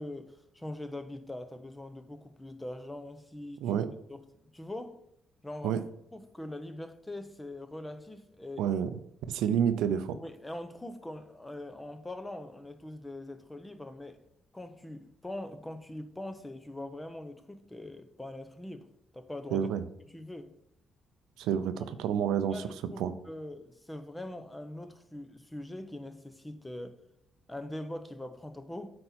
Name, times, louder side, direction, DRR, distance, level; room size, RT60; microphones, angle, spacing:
voice 1, 0.0-3.8 4.1-5.0 5.4-5.8 6.1-8.7 10.2-14.2 14.5-18.9 19.1-19.7 20.1-20.5 22.5-27.0 27.5-28.9, left 1 dB, 10° left, 0.8 m, -42 dB
voice 2, 8.6-8.9 9.3-10.2 19.5-19.8 21.4-22.6 23.0-23.1, right 8 dB, 90° right, 0.5 m, -29 dB
8.7 x 4.2 x 4.3 m
cardioid pair, 90°, 0 cm